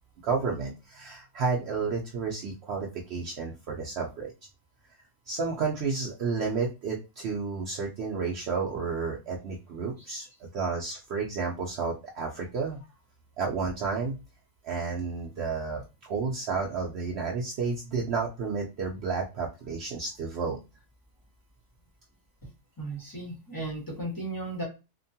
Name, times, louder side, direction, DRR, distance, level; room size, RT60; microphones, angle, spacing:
voice 1, 0.2-4.3 5.3-10.3 10.5-12.8 13.4-14.2 14.6-20.6, right 4 dB, 90° right, -1 dB, 0.5 m, -31 dB
voice 2, 22.8-24.6, right 2 dB, 15° left, -4 dB, 0.8 m, -35 dB
2.9 x 2.1 x 2.6 m, 0.27 s
omnidirectional pair, 1.7 m